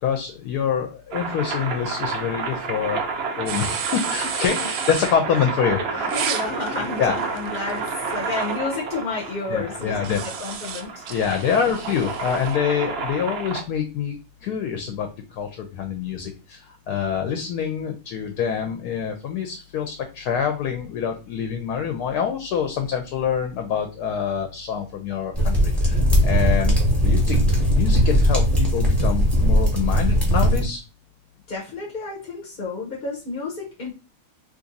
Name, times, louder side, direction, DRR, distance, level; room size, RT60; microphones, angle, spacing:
voice 1, 0.0-3.0 3.4-6.1 7.0-7.1 9.5-10.2 11.1-14.2 14.4-26.8 27.0-27.4 27.8-30.8, left 7 dB, 70° left, 5 dB, 1.0 m, -26 dB
sound 1, 1.1-13.6, right 4 dB, 90° right, 0.5 m, -30 dB
sound 2, 3.5-5.1 6.1-8.5 10.0-12.6, right 7 dB, 75° right, 1.1 m, -33 dB
voice 2, 6.1-11.6 31.5-33.9, left 4 dB, 45° left, -3 dB, 0.7 m, -31 dB
sound 3, 25.3-30.6, equal, ahead, 0.8 m, -19 dB
2.9 x 2.6 x 3.8 m, 0.32 s
omnidirectional pair, 1.9 m